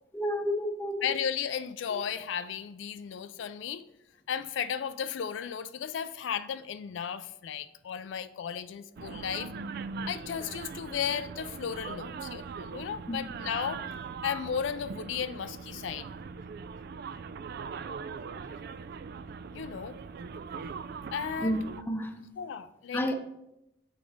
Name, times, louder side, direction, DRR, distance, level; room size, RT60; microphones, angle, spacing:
voice 1, 0.1-1.1 13.1-13.2 21.4-21.6 21.9-22.2 22.9-23.1, equal, 10° left, 0.7 m, -30 dB
voice 2, 1.0-3.8 4.3-9.5 10.1-13.8 14.2-16.1 19.5-20.0 21.1-21.6 22.4-23.1, left 7 dB, 75° left, 0.3 m, -34 dB
sound 1, 9.0-21.8, right 5 dB, 55° right, 0.3 m, -41 dB
7.8 x 5.2 x 4.9 m
head